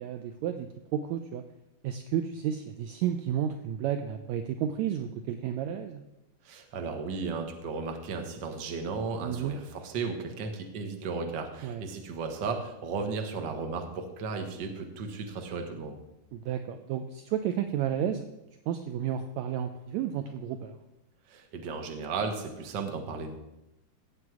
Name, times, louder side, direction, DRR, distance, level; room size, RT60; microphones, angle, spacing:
voice 1, 0.0-1.4 1.8-6.0 9.2-9.5 11.6-11.8 16.3-18.3 18.7-20.8, right 9 dB, 80° right, 7 dB, 1.6 m, -32 dB
voice 2, 6.4-16.0 21.3-23.3, right 4 dB, 50° right, 4 dB, 1.4 m, -35 dB
16.0 x 7.8 x 4.8 m, 0.93 s
omnidirectional pair, 3.8 m